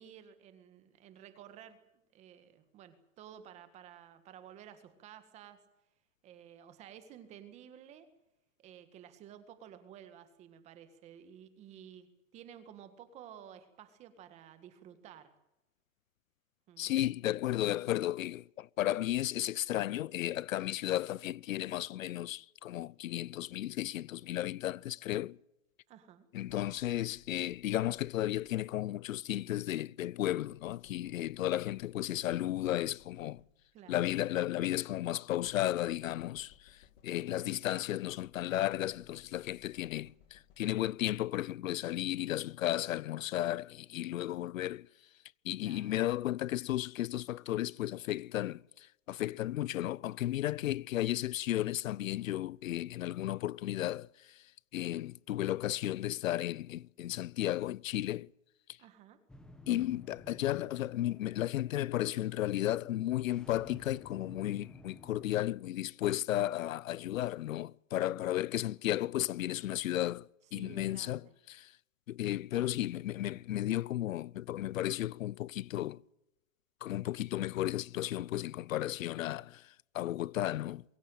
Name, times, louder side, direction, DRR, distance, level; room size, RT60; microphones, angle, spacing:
voice 1, 0.0-1.8 2.1-5.6 6.2-8.1 8.6-12.1 12.3-15.3 16.7-16.9 25.9-26.3 33.7-34.1 37.2-37.5 45.6-45.9 58.8-59.2 68.5-68.6 70.5-71.3 72.5-72.8, right 9 dB, 15° right, 1.8 m, -53 dB
voice 2, 16.8-25.4 26.3-33.4 33.9-44.9 45.4-54.4 54.7-58.3 59.7-71.2 71.5-71.7 72.1-76.0 76.8-80.8, left 13 dB, 85° left, 0.7 m, -34 dB
sound 1, 26.5-28.9 30.3-33.9 35.3-37.5 38.1-41.1, left 9 dB, 45° left, 2.8 m, -64 dB
sound 2, 59.3-65.4, left 1 dB, ahead, 1.1 m, -54 dB
22.5 x 16.5 x 9.1 m
supercardioid pair, 175°, 39 cm